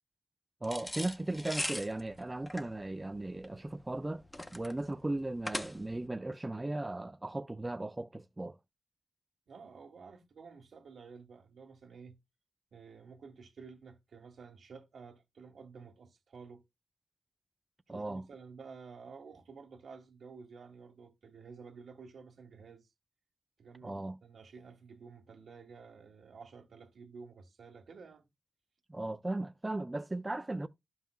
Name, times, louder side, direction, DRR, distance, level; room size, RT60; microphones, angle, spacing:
sound 1, 0.6-6.1, left 1 dB, 15° left, 0.7 m, -40 dB
voice 1, 0.6-4.2 4.5-8.6 17.9-18.2 23.8-24.2 28.9-30.7, right 2 dB, 20° right, 0.3 m, -37 dB
voice 2, 9.5-12.2 12.7-16.6 17.9-22.9 23.6-28.3, right 5 dB, 75° right, 1.5 m, -52 dB
12.0 x 5.5 x 2.3 m
cardioid pair, 80°, 0 cm